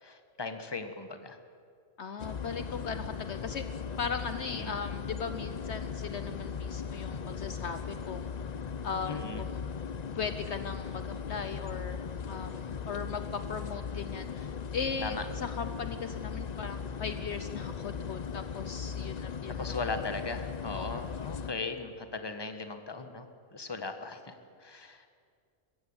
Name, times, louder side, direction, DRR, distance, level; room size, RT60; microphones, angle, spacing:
voice 1, 0.0-1.4 4.5-4.7 9.1-9.5 15.0-15.2 19.6-23.3 23.5-25.0, left 3 dB, 20° left, 7 dB, 1.3 m, -38 dB
voice 2, 2.0-3.6 4.0-8.3 8.8-9.6 10.1-19.8 20.8-21.0 21.5-21.7, left 5 dB, 60° left, 10 dB, 1.1 m, -38 dB
sound 1, 2.2-21.5, left 6 dB, 40° left, 0.6 m, -38 dB
22.5 x 15.0 x 8.8 m, 2.2 s
omnidirectional pair, 1.3 m